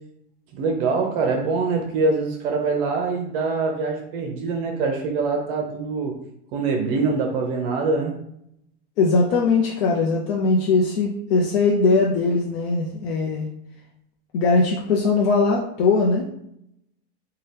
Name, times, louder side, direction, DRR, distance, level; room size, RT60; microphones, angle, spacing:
voice 1, 0.5-6.1 6.5-8.2, right 4 dB, 60° right, 2 dB, 0.6 m, -24 dB
voice 2, 9.0-13.5 14.3-16.2, left 3 dB, 70° left, -2 dB, 0.6 m, -20 dB
2.8 x 2.2 x 3.3 m, 0.74 s
supercardioid pair, 140°, 31 cm